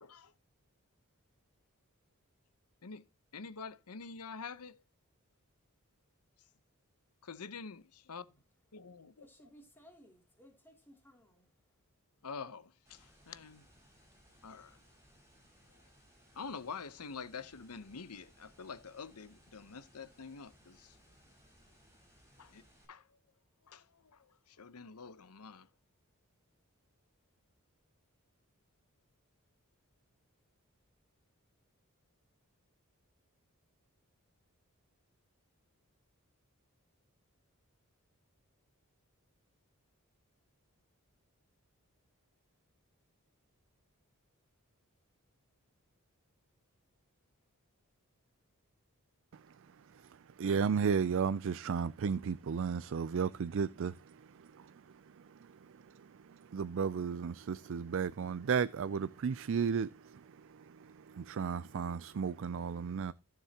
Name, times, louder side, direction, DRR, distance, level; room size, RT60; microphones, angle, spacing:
voice 1, 0.0-0.3 2.8-3.0 3.3-4.8 7.2-8.2 8.7-9.3 12.2-13.7 14.4-14.8 16.3-21.0 22.4-22.6 22.9-23.0 23.7-25.7, left 5 dB, 85° left, 0.9 m, -47 dB
voice 2, 9.2-11.5, equal, 10° left, 2.8 m, -60 dB
sound 1, 12.9-22.9, equal, 15° right, 6.2 m, -64 dB
voice 3, 50.4-54.7 55.9-63.1, right 6 dB, 60° right, 0.4 m, -34 dB
15.5 x 7.1 x 2.9 m
head